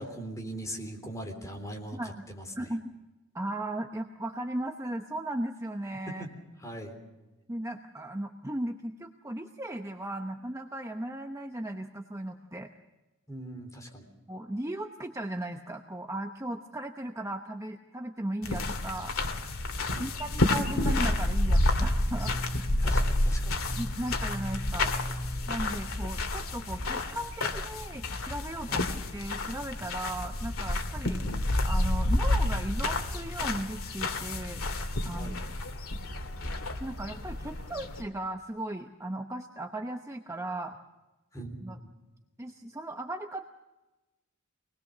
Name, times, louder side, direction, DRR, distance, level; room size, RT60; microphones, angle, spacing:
voice 1, 0.0-2.7 6.1-6.3 6.6-7.0 13.3-14.1 19.9-20.1 22.8-23.6 28.7-28.9 35.1-35.4 41.3-41.9, right 1 dB, 15° left, 2 dB, 3.6 m, -41 dB
voice 2, 2.6-2.9 3.3-6.2 7.5-12.7 14.3-19.1 20.0-22.7 23.8-24.9 25.5-28.9 29.1-31.2 31.6-34.6 35.0-35.4 36.8-40.8 41.6-41.8 42.4-43.5, right 1 dB, 15° right, 4 dB, 0.8 m, -36 dB
sound 1, 18.4-38.0, left 1 dB, 85° left, 2.0 m, -30 dB
25.0 x 20.0 x 6.6 m, 1.1 s
head